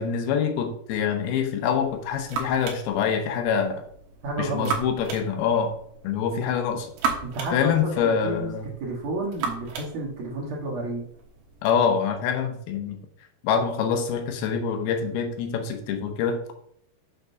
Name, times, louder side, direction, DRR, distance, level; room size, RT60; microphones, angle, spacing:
voice 1, 0.0-3.8 4.4-5.7 6.0-6.9 7.5-8.7 11.6-13.0 13.4-16.5, left 7 dB, 90° left, 5 dB, 2.9 m, -25 dB
sound 1, 1.6-11.8, right 5 dB, 85° right, 3.2 m, -36 dB
voice 2, 4.2-4.7 7.2-8.5 8.8-11.0, right 2 dB, 55° right, -4 dB, 2.2 m, -31 dB
7.3 x 6.8 x 2.7 m, 0.66 s
omnidirectional pair, 4.3 m